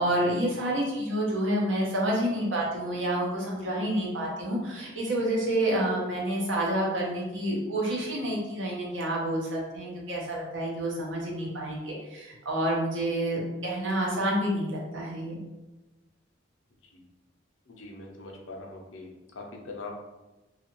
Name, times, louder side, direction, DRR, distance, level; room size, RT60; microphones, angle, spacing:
voice 1, 0.0-15.4, right 1 dB, 85° right, -3 dB, 0.8 m, -29 dB
voice 2, 17.8-19.1 19.4-19.9, left 3 dB, 90° left, 1 dB, 0.6 m, -41 dB
2.6 x 2.4 x 2.9 m, 1.1 s
head